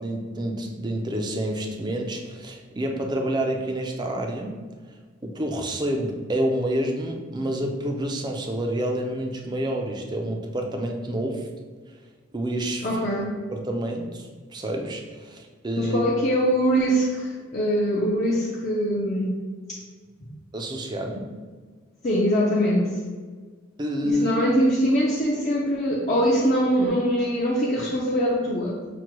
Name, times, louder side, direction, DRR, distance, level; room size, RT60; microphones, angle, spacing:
voice 1, 0.0-4.6 5.2-11.5 12.3-13.0 13.5-16.0 20.5-21.3 23.8-24.3, right 1 dB, 20° right, 2 dB, 0.4 m, -28 dB
voice 2, 12.8-13.3 15.8-19.3 19.7-19.8 20.2-20.3 22.0-22.9 24.0-28.8, equal, 35° left, -5 dB, 0.5 m, -23 dB
6.0 x 2.2 x 2.9 m, 1.5 s
head